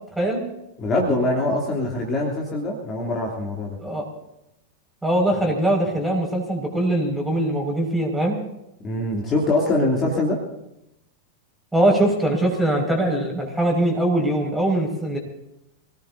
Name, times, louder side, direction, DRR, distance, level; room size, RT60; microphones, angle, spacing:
voice 1, 0.8-3.8 8.8-10.4, left 2 dB, 25° left, -2 dB, 3.1 m, -23 dB
voice 2, 5.0-8.4 11.7-15.2, right 1 dB, 5° right, 1 dB, 5.6 m, -22 dB
26.0 x 18.0 x 2.8 m, 0.87 s
figure-of-eight pair, 90°, 0 cm